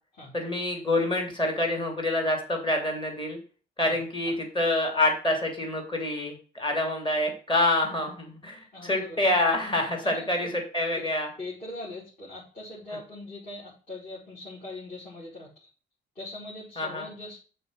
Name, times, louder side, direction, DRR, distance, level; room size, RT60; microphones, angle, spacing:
voice 1, 0.3-3.4 3.8-11.3 16.8-17.1, left 1 dB, 25° left, 2 dB, 3.3 m, -27 dB
voice 2, 8.7-9.3 10.0-10.5 11.4-15.7 16.2-17.4, left 2 dB, 40° left, -7 dB, 5.2 m, -41 dB
6.9 x 4.9 x 6.4 m, 0.38 s
cardioid pair, 90°, 20 cm